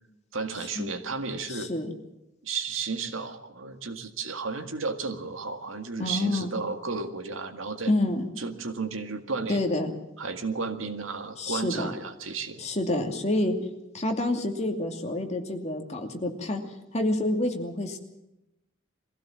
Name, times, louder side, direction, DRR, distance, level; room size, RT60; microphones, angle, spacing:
voice 1, 0.3-1.7 2.4-7.9 8.4-9.6 10.2-12.6, right 4 dB, 85° right, 7 dB, 1.9 m, -33 dB
voice 2, 1.5-1.9 6.0-6.5 7.9-8.2 9.5-9.9 11.4-11.9 12.6-13.7 13.9-18.0, left 1 dB, 35° left, 3 dB, 2.6 m, -28 dB
22.5 x 16.0 x 7.4 m, 0.92 s
head